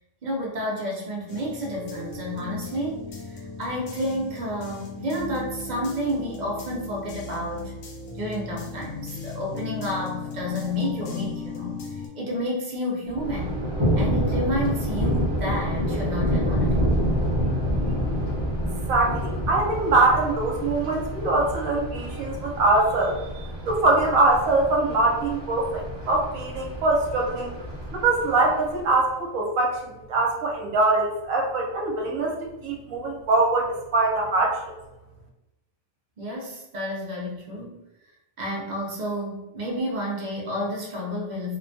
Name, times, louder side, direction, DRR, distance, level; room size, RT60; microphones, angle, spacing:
voice 1, 0.2-7.7 8.1-11.8 12.2-13.6 13.9-16.9 36.2-37.8 38.4-41.6, left 1 dB, 55° right, -2 dB, 0.5 m, -30 dB
sound 1, 1.3-12.1, left 3 dB, 70° left, 0.9 m, -37 dB
Thunder, 13.1-29.0, equal, 25° right, 0.8 m, -28 dB
voice 2, 18.9-27.5 27.9-32.3 32.6-34.6, right 2 dB, 80° right, 0 dB, 1.1 m, -23 dB
2.8 x 2.2 x 2.5 m, 0.95 s
omnidirectional pair, 1.4 m